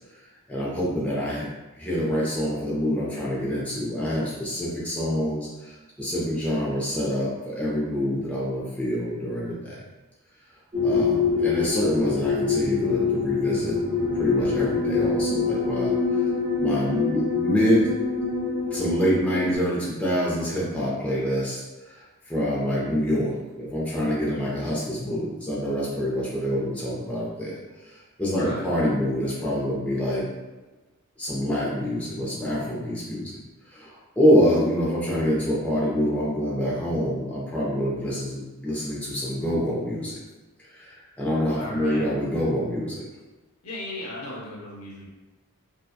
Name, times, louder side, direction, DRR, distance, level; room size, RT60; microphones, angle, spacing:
voice 1, 0.5-1.5 1.8-9.8 10.8-13.8 14.2-15.9 16.6-17.9 18.7-21.6 22.3-27.6 28.2-30.3 31.2-33.4 33.7-40.2 40.8-43.0, equal, 5° left, -7 dB, 0.4 m, -26 dB
sound 1, 10.7-19.6, left 4 dB, 25° right, 0.7 m, -25 dB
voice 2, 28.3-28.7 41.5-42.1 43.6-45.1, left 1 dB, 75° left, -3 dB, 0.7 m, -36 dB
2.7 x 2.1 x 2.2 m, 1.2 s
head